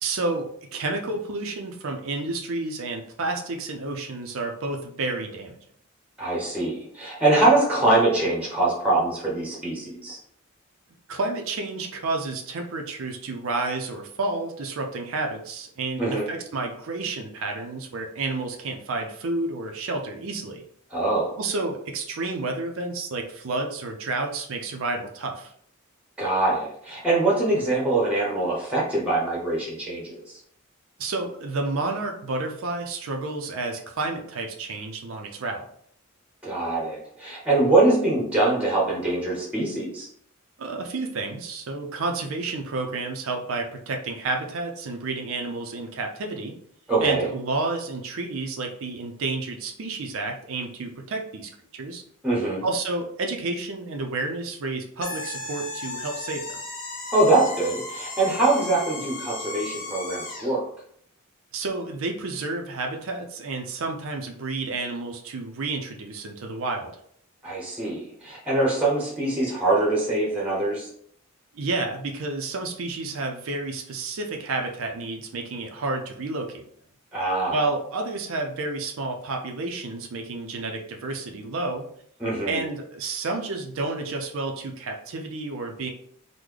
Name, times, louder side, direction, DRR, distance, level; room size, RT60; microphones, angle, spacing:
voice 1, 0.0-5.6 11.1-20.6 21.4-25.5 31.0-35.7 40.6-46.5 47.0-52.0 52.6-56.6 61.5-66.9 71.5-76.6 77.5-81.9 82.5-85.9, right 3 dB, 65° right, 3 dB, 0.5 m, -30 dB
voice 2, 6.2-10.2 16.0-16.3 20.9-21.3 26.2-30.2 36.4-40.1 46.9-47.3 52.2-52.6 57.1-60.6 67.4-70.9 77.1-77.6 82.2-82.6, right 2 dB, 5° right, -4 dB, 0.8 m, -23 dB
sound 1, 55.0-60.6, left 2 dB, 40° left, 0.7 m, -35 dB
3.7 x 2.1 x 3.1 m, 0.65 s
head